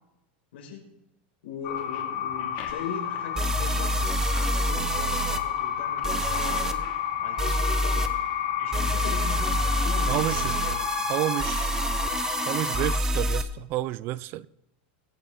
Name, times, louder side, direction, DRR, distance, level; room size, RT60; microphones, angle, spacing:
voice 1, 0.5-0.9 1.4-4.0 4.3-6.8 7.2-8.1 8.6-11.1, left 6 dB, 90° left, 6.0 m, -40 dB
sound 1, 1.6-13.0, left 10 dB, 55° left, 2.5 m, -30 dB
sound 2, 2.7-2.8 3.4-5.4 6.0-6.7 7.4-8.1 8.7-13.4, right 1 dB, 10° right, 0.7 m, -27 dB
voice 2, 10.1-10.6 11.1-11.8 12.5-14.5, right 16 dB, 35° right, 0.4 m, -30 dB
22.5 x 8.5 x 3.9 m
supercardioid pair, 160°, 6 cm